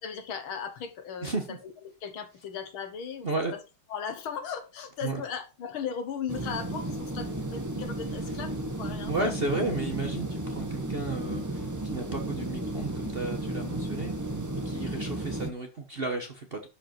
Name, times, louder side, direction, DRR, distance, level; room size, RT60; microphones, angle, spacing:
voice 1, 0.0-3.6 3.9-9.4, left 7 dB, 70° left, 9 dB, 2.1 m, -37 dB
voice 2, 1.2-1.6 3.2-3.5 5.0-5.2 9.1-14.1 14.6-16.7, right 2 dB, 35° right, 4 dB, 1.0 m, -33 dB
sound 1, 6.3-15.5, right 1 dB, 15° right, 0.6 m, -33 dB
11.5 x 5.1 x 4.4 m, 0.30 s
omnidirectional pair, 2.4 m